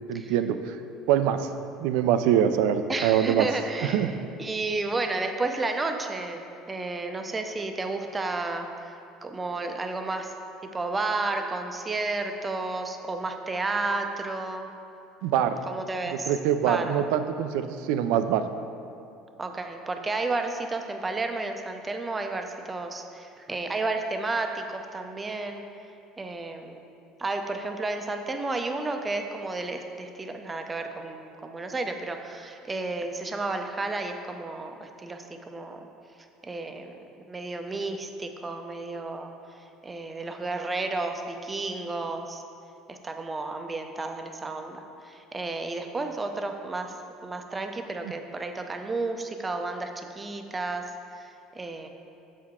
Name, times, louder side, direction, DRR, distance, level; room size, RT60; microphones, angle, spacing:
voice 1, 0.1-0.8 1.1-1.5 1.8-3.5 3.8-4.1 15.2-15.6 16.3-18.5 48.0-48.1, right 9 dB, 80° right, 9 dB, 0.3 m, -24 dB
voice 2, 2.9-9.0 9.2-10.3 10.6-14.7 15.7-16.3 16.6-16.9 19.4-25.6 26.2-26.8 27.2-35.8 36.4-37.0 37.3-39.3 39.8-42.4 42.9-46.9 47.2-50.8 51.2-51.9, right 3 dB, 20° right, 5 dB, 0.5 m, -32 dB
7.0 x 4.6 x 3.7 m, 2.6 s
supercardioid pair, 105°, 0 cm